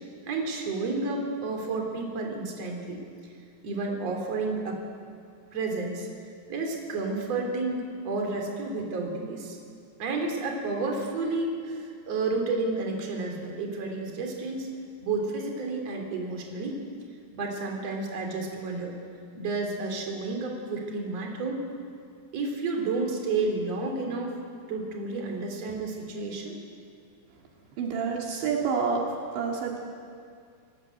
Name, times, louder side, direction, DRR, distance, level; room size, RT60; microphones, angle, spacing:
voice 1, 0.3-3.0 3.6-4.8 5.5-6.1 6.5-9.6 10.0-14.7 15.0-16.8 17.3-18.9 19.3-21.6 22.3-24.4 24.7-26.6, right 3 dB, 35° right, 1 dB, 4.2 m, -31 dB
voice 2, 27.8-29.0 29.3-29.8, right 5 dB, 70° right, 0 dB, 4.2 m, -28 dB
29.0 x 18.5 x 8.0 m, 2.3 s
omnidirectional pair, 5.6 m